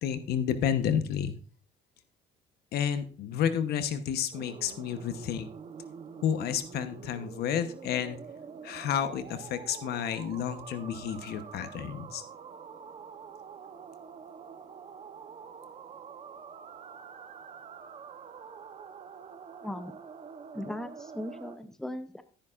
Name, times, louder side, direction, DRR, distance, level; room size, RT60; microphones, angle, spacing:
voice 1, 0.0-1.3 2.7-5.5 6.2-8.2 8.6-12.2, left 8 dB, 70° left, 10 dB, 1.0 m, -31 dB
sound 1, 4.3-21.6, right 6 dB, 40° right, 0.9 m, -46 dB
voice 2, 19.6-19.9 20.5-22.2, left 1 dB, 5° left, 10 dB, 0.7 m, -38 dB
12.5 x 10.0 x 2.5 m, 0.40 s
cardioid pair, 110°, 17 cm